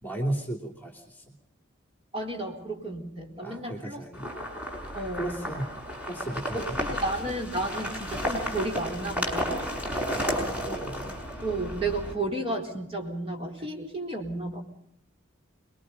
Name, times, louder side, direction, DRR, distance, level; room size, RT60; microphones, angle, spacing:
voice 1, 0.0-1.4 3.4-4.3 5.1-5.7 6.1-6.9 10.1-11.2, right 1 dB, 10° left, 3 dB, 3.0 m, -35 dB
voice 2, 2.1-4.0 4.9-5.4 6.5-9.6 11.4-14.6, right 2 dB, 30° right, 1 dB, 4.1 m, -32 dB
sound 1, 4.1-12.1, equal, 5° right, 5.7 m, -33 dB
25.5 x 22.5 x 5.4 m, 0.72 s
head